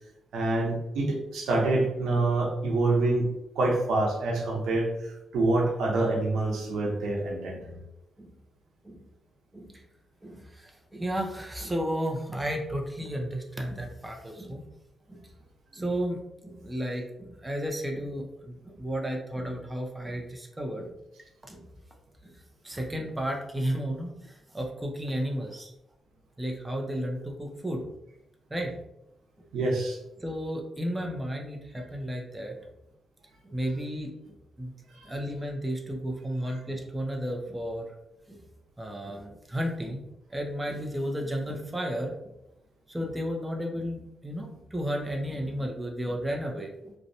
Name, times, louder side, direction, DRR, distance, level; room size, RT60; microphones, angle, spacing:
voice 1, 0.3-3.3 3.6-4.9 5.3-7.7 29.5-30.0, right 2 dB, 90° right, -1 dB, 0.7 m, -26 dB
voice 2, 10.2-14.7 15.1-15.3 15.7-20.9 21.4-21.7 22.2-25.7 26.4-27.9 28.5-28.8 29.4-29.5 30.2-32.6 33.4-34.7 35.0-37.9 38.3-38.4 38.8-40.0 40.3-42.1 42.9-46.9, equal, 10° right, 1 dB, 0.4 m, -33 dB
2.6 x 2.0 x 2.6 m, 0.86 s
cardioid pair, 105°, 0 cm